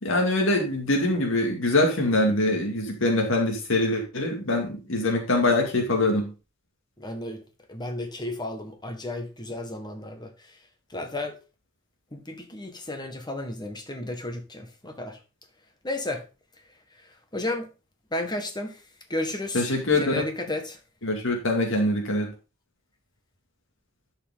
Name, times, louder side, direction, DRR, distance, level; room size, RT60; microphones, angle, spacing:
voice 1, 0.0-6.3 19.5-20.1 21.0-22.3, left 2 dB, 70° left, 2.3 m, -23 dB
voice 2, 7.0-7.4 7.7-10.3 10.9-11.4 12.1-15.2 15.8-16.2 17.3-17.7 18.1-18.8 19.1-20.8, left 1 dB, 20° left, 1.6 m, -33 dB
11.0 x 5.7 x 3.8 m
head